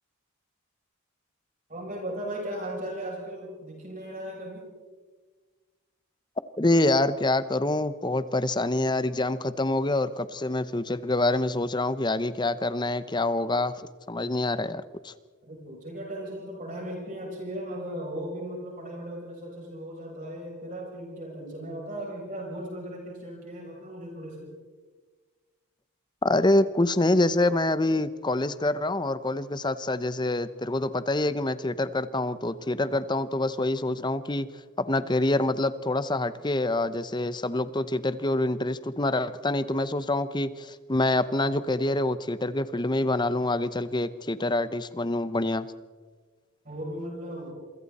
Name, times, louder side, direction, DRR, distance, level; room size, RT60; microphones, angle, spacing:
voice 1, 1.7-4.7 15.4-24.5 46.6-47.5, right 1 dB, 40° right, -2 dB, 7.4 m, -37 dB
voice 2, 6.6-13.7 14.1-15.1 26.2-34.5 34.8-45.7, left 2 dB, 20° left, 14 dB, 0.8 m, -26 dB
27.5 x 24.5 x 4.2 m, 1.4 s
head